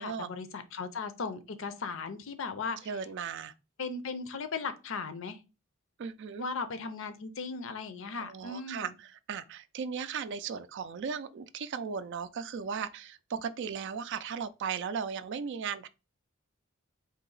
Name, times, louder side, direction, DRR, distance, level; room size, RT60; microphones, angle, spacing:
voice 1, 0.0-2.8 3.8-5.4 6.4-8.9, left 4 dB, 65° left, 0.6 m, -37 dB
voice 2, 2.9-3.5 6.0-6.4 8.2-15.9, right 6 dB, 60° right, 0.4 m, -36 dB
3.9 x 2.8 x 3.9 m
head